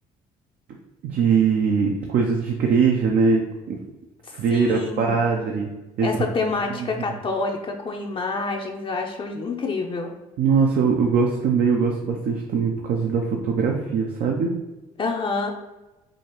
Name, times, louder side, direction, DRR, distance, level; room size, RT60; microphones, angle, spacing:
voice 1, 1.1-3.4 3.7-3.8 4.3-5.7 6.0-6.1 6.8-6.9 10.4-14.5, right 5 dB, 65° right, 1 dB, 0.6 m, -21 dB
voice 2, 4.5-5.2 6.0-10.1 15.0-15.5, left 3 dB, 30° left, 1 dB, 0.5 m, -27 dB
4.9 x 2.4 x 3.0 m, 1.1 s
cardioid pair, 85°, 16 cm